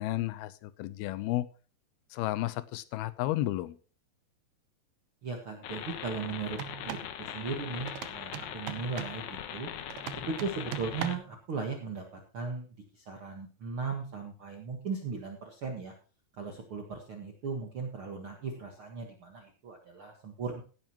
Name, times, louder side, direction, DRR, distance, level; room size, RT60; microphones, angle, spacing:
voice 1, 0.0-1.5 2.1-3.8, left 15 dB, 90° left, 16 dB, 2.7 m, -32 dB
voice 2, 5.2-6.6 6.8-9.7 10.3-12.0 12.3-15.9 16.4-20.6, right 4 dB, 50° right, 2 dB, 1.8 m, -37 dB
sound 1, 5.6-11.2, left 10 dB, 70° left, 2.0 m, -41 dB
sound 2, 6.5-7.1 7.9-9.2 9.9-11.4, right 12 dB, 80° right, 2.7 m, -40 dB
16.5 x 10.0 x 3.0 m, 0.37 s
omnidirectional pair, 4.4 m